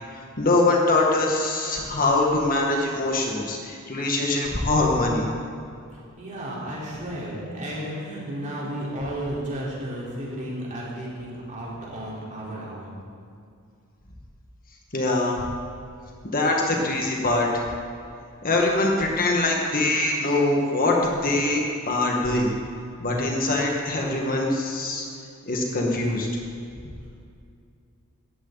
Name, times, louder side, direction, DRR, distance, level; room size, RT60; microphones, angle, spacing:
voice 1, 0.4-5.3 14.9-15.4 16.2-17.5 18.4-21.0 21.2-22.5 23.0-25.0 25.5-26.3, left 2 dB, 40° left, -1 dB, 1.9 m, -23 dB
voice 2, 6.2-12.9, right 1 dB, 35° right, -6 dB, 4.4 m, -33 dB
18.0 x 14.0 x 4.2 m, 2.4 s
head